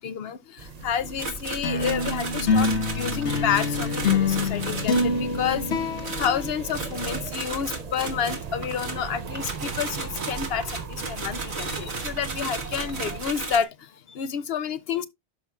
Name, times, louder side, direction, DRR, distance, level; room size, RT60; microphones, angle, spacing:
voice 1, 0.0-15.1, left 8 dB, 70° left, 0.8 m, -30 dB
sound 1, 0.6-13.2, right 6 dB, 45° right, 0.6 m, -38 dB
sound 2, 1.2-5.2 6.0-13.6, right 3 dB, 70° right, 1.5 m, -35 dB
sound 3, 1.6-7.2, left 4 dB, 85° left, 1.4 m, -26 dB
12.0 x 5.6 x 2.3 m
omnidirectional pair, 1.1 m